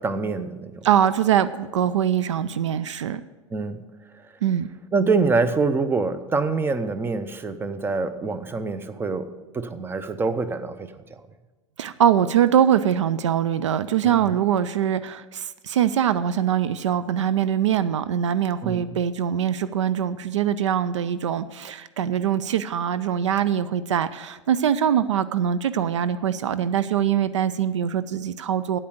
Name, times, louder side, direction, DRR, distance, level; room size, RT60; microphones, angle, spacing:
voice 1, 0.0-0.8 3.5-3.8 4.9-10.9 14.0-14.3 18.6-18.8, right 4 dB, 15° right, 12 dB, 0.7 m, -25 dB
voice 2, 0.8-3.2 4.4-4.7 11.8-28.8, right 9 dB, 70° right, 13 dB, 0.4 m, -23 dB
8.8 x 8.4 x 8.1 m, 1.2 s
figure-of-eight pair, 85°, 16 cm